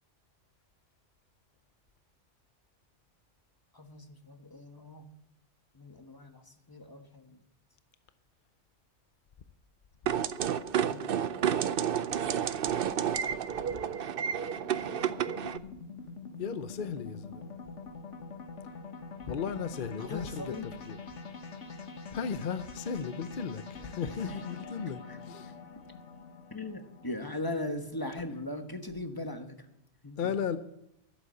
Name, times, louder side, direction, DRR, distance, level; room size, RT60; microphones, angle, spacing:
voice 1, 3.7-5.1 5.7-6.4 6.7-7.4 10.8-12.3 20.0-20.7 24.2-24.3 26.5-29.6 30.0-30.2, left 2 dB, 20° left, 1.2 m, -39 dB
sound 1, 10.1-15.6, right 9 dB, 60° right, 0.7 m, -30 dB
sound 2, 13.2-29.2, left 4 dB, 75° left, 1.7 m, -46 dB
voice 2, 16.4-17.5 19.3-21.0 22.1-25.5 30.2-30.6, left 6 dB, 50° left, 0.8 m, -35 dB
12.0 x 8.1 x 8.4 m
omnidirectional pair, 1.2 m